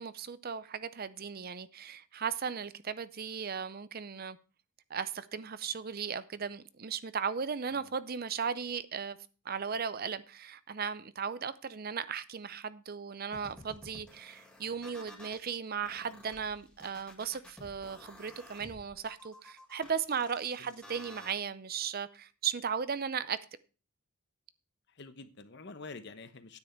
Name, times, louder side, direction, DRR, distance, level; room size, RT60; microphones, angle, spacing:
voice 1, 0.0-4.4 4.9-9.2 9.4-23.4, right 6 dB, 40° right, 0.5 m, -36 dB
sound 1, 13.3-15.4 15.8-21.3, left 1 dB, 5° left, 1.8 m, -52 dB
voice 2, 24.9-26.6, left 3 dB, 50° left, 1.0 m, -47 dB
9.6 x 9.6 x 4.5 m
head